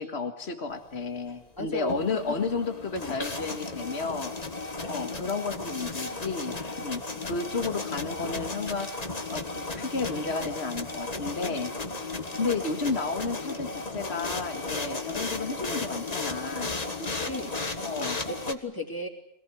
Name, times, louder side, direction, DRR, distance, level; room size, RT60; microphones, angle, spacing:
voice 1, 0.0-4.3 4.9-16.7 17.8-18.2, left 4 dB, 70° left, 6 dB, 2.1 m, -32 dB
voice 2, 1.6-2.0 2.9-3.1 7.1-7.3 12.3-12.5 17.0-17.5 18.3-19.1, left 1 dB, 20° left, 0 dB, 3.7 m, -35 dB
sound 1, 1.7-18.5, left 3 dB, 35° left, 1.7 m, -34 dB
25.0 x 18.5 x 9.9 m, 0.78 s
omnidirectional pair, 1.1 m